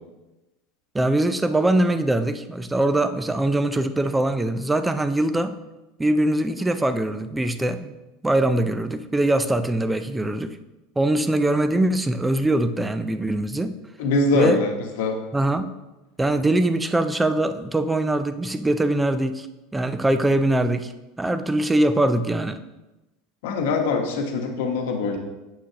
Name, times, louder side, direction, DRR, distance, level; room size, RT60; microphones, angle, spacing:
voice 1, 0.9-5.6 6.0-8.0 8.2-10.6 11.0-13.8 14.3-14.6 15.3-15.7 16.2-19.5 19.7-20.9 21.2-22.6, right 1 dB, 5° right, 10 dB, 0.3 m, -22 dB
voice 2, 14.0-14.7 15.0-15.2 23.4-25.2, left 3 dB, 75° left, 3 dB, 1.1 m, -23 dB
7.9 x 6.2 x 2.9 m, 1.0 s
supercardioid pair, 155°, 0 cm